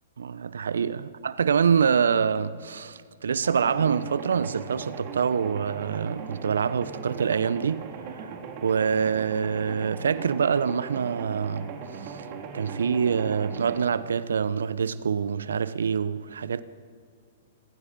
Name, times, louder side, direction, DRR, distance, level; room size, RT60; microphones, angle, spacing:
voice 1, 0.2-7.9 8.1-8.3 8.6-11.7 12.0-12.2 12.5-16.6, right 6 dB, 75° right, 0.9 m, -25 dB
sound 1, 3.4-13.8, right 6 dB, 45° right, 3.7 m, -39 dB
27.0 x 25.0 x 5.4 m
hypercardioid pair, 115°, 0 cm